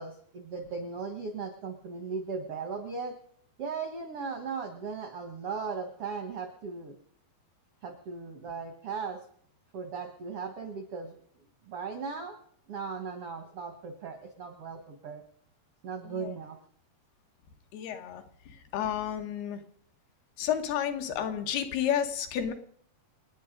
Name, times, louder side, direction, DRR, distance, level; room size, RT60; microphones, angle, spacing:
voice 1, 0.0-3.2 3.6-6.9 7.8-9.2 9.7-11.2 11.7-12.4 12.7-15.2 15.8-16.6, right 5 dB, 65° right, 6 dB, 1.4 m, -37 dB
voice 2, 17.7-18.2 18.7-19.6 20.4-22.5, left 9 dB, 75° left, 6 dB, 3.1 m, -31 dB
27.5 x 9.5 x 5.2 m, 0.63 s
omnidirectional pair, 4.7 m